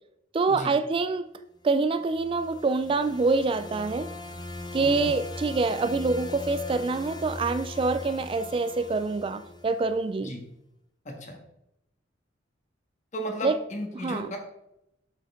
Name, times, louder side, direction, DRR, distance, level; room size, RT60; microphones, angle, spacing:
voice 1, 0.3-1.3 1.6-4.1 4.7-10.4 13.4-13.6 14.0-14.3, right 3 dB, 30° right, 0.3 m, -26 dB
sound 1, 1.9-10.1, left 2 dB, 20° left, 0.8 m, -40 dB
voice 2, 4.8-5.1 10.2-10.4 11.0-11.4 13.1-14.4, equal, 40° left, 1.7 m, -34 dB
8.0 x 6.7 x 3.6 m
head